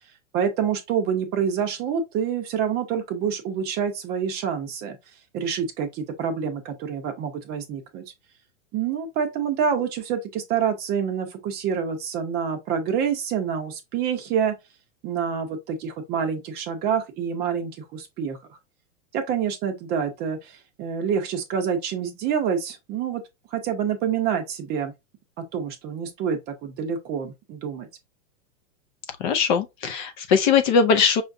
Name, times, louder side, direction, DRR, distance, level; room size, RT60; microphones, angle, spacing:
voice 1, 0.3-5.0 5.3-8.0 8.7-14.5 15.0-18.4 19.1-23.2 23.5-24.9 25.5-27.9, right 7 dB, 25° right, 0.6 m, -27 dB
voice 2, 29.2-31.2, left 6 dB, 35° left, 0.5 m, -20 dB
5.6 x 2.4 x 2.5 m
hypercardioid pair, 140°, 41 cm